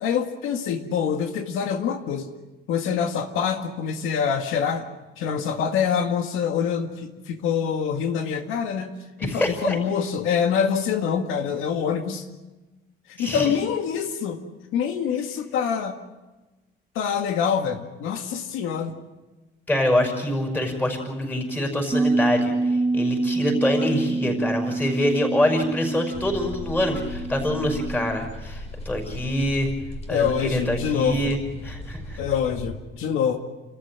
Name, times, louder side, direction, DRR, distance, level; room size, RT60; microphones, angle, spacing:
voice 1, 0.0-2.3 2.7-4.9 5.2-9.0 9.2-12.3 13.1-14.4 14.7-16.0 17.0-18.9 30.1-31.3 32.2-33.4, left 7 dB, 90° left, 5 dB, 2.0 m, -25 dB
voice 2, 9.2-9.8 13.2-13.5 19.7-29.7 30.1-31.4 31.6-32.2, left 1 dB, 10° left, 3 dB, 5.7 m, -25 dB
Bass guitar, 21.9-28.2, right 2 dB, 15° right, 1.2 m, -26 dB
sound 1, 26.1-32.8, left 2 dB, 30° left, 2.8 m, -37 dB
29.5 x 14.0 x 8.9 m, 1.1 s
cardioid pair, 160°, 21 cm